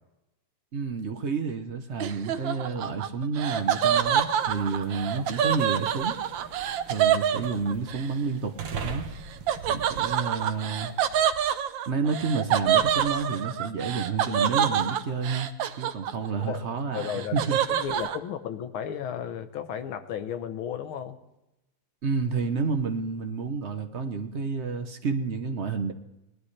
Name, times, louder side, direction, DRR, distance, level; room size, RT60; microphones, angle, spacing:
voice 1, 0.7-6.2 6.9-8.5 8.8-9.1 9.7-10.9 11.9-15.5 15.8-17.6 22.0-25.9, right 5 dB, 50° right, 7 dB, 0.8 m, -30 dB
Laughter, 2.0-8.0 9.5-16.4 16.8-18.2, right 9 dB, 70° right, 1.4 m, -26 dB
sound 1, 3.5-11.3, right 4 dB, 90° right, 2.1 m, -43 dB
voice 2, 16.9-21.2, left 8 dB, 75° left, 9 dB, 1.8 m, -34 dB
19.5 x 12.0 x 3.3 m, 0.92 s
omnidirectional pair, 2.4 m